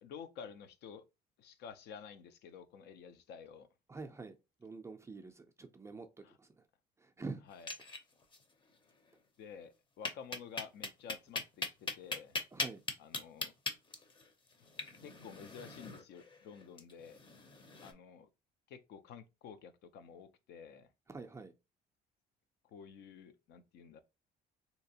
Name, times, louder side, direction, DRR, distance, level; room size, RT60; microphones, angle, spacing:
voice 1, 0.0-1.0 1.4-3.7 6.2-6.4 7.4-7.7 9.4-9.7 10.0-12.4 13.0-13.5 14.6-14.7 15.0-17.2 17.8-18.3 18.7-20.9 22.7-24.0, left 7 dB, 75° left, 0.6 m, -51 dB
voice 2, 3.9-4.3 4.6-6.1 7.2-7.4 12.5-12.8 21.1-21.5, right 3 dB, 15° right, 0.4 m, -45 dB
sound 1, 7.5-8.4 8.7-8.8 9.1-9.2 10.0-17.9, left 3 dB, 30° left, 0.6 m, -40 dB
3.3 x 2.9 x 2.7 m
cardioid pair, 110°, 17 cm